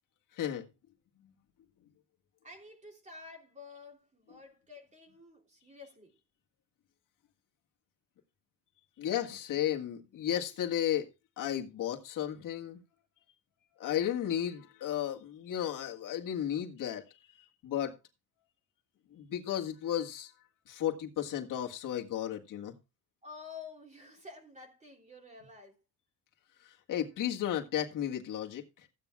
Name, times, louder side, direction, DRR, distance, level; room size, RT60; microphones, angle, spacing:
voice 1, 0.3-0.7 9.0-11.1 11.4-12.8 13.8-17.0 17.4-18.0 19.1-20.3 20.7-22.7 26.6-28.9, left 10 dB, 60° left, 1.8 m, -34 dB
voice 2, 2.4-6.1 23.2-25.8, left 4 dB, 20° right, 3.2 m, -50 dB
15.0 x 9.3 x 2.4 m
cardioid pair, 120°, 35 cm